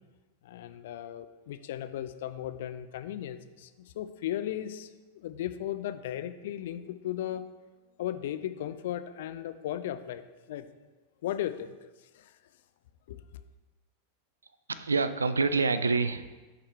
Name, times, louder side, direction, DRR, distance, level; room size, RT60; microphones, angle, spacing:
voice 1, 0.4-7.4 8.0-10.7 11.2-11.8 12.1-12.3 13.1-13.2, left 11 dB, 55° left, 12 dB, 0.4 m, -36 dB
voice 2, 14.7-16.4, right 4 dB, 75° right, 13 dB, 0.3 m, -27 dB
10.5 x 3.8 x 3.3 m, 1.2 s
figure-of-eight pair, 90°, 0 cm